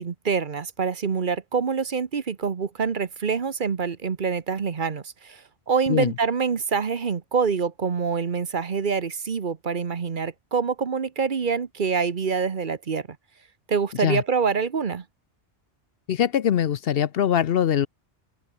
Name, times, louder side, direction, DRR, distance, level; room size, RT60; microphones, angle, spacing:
voice 1, 0.0-13.1 13.7-15.0, right 5 dB, 50° right, 1.1 m, -26 dB
voice 2, 16.1-17.9, left 9 dB, 65° left, 0.8 m, -22 dB
open air
omnidirectional pair, 1.1 m